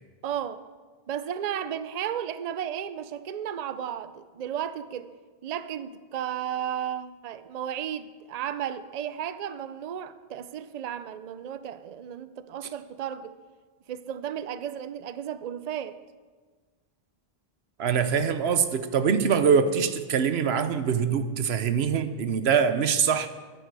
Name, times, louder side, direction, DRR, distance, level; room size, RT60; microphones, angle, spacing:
voice 1, 0.2-0.6 1.1-5.1 5.4-13.3 13.9-16.0, right 9 dB, 50° right, 13 dB, 0.6 m, -34 dB
voice 2, 17.8-23.3, right 6 dB, 85° right, 11 dB, 1.0 m, -24 dB
13.0 x 10.5 x 4.7 m, 1.4 s
omnidirectional pair, 1.0 m